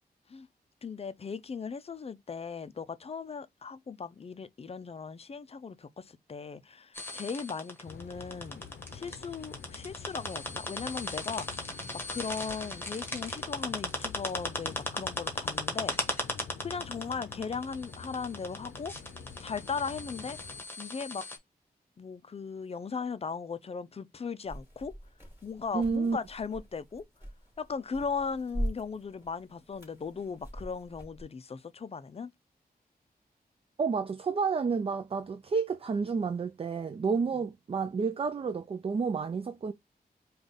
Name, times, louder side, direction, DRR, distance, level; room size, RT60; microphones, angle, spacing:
voice 1, 0.8-8.6 8.9-16.1 16.6-18.9 19.4-20.4 20.8-21.3 22.0-24.9 25.4-27.0 27.6-32.3, left 5 dB, 40° left, 0.4 m, -38 dB
sound 1, 6.9-21.4, left 1 dB, 15° left, 1.3 m, -37 dB
sound 2, 7.8-20.6, left 6 dB, 90° left, 0.6 m, -47 dB
sound 3, 24.4-31.2, equal, 15° right, 3.3 m, -42 dB
voice 2, 25.7-26.2 33.8-39.7, right 5 dB, 35° right, 0.4 m, -30 dB
4.9 x 2.4 x 4.0 m
wide cardioid pair, 120°, 16 cm